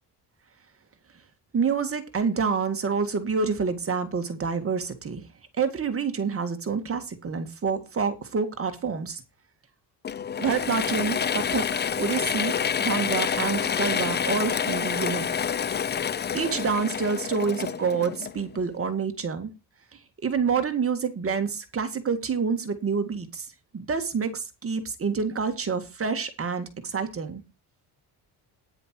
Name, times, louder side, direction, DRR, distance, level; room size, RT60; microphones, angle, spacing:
voice 1, 1.5-5.2 5.6-9.2 10.4-12.5 12.8-15.3 16.3-19.5 20.2-27.4, right 5 dB, 35° right, 8 dB, 2.0 m, -27 dB
Mechanisms / Drill, 10.0-18.7, left 7 dB, 25° left, 0.5 m, -28 dB
10.0 x 10.0 x 4.6 m, 0.26 s
cardioid pair, 125°, 40 cm